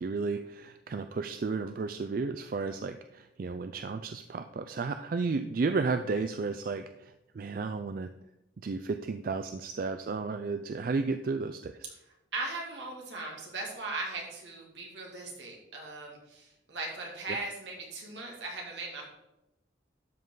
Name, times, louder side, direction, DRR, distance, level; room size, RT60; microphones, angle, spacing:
voice 1, 0.0-8.1 8.6-11.9 17.3-17.4, right 4 dB, 50° right, 8 dB, 0.4 m, -33 dB
voice 2, 12.3-19.1, right 3 dB, 75° right, -1 dB, 2.6 m, -38 dB
12.0 x 5.4 x 3.9 m, 0.91 s
head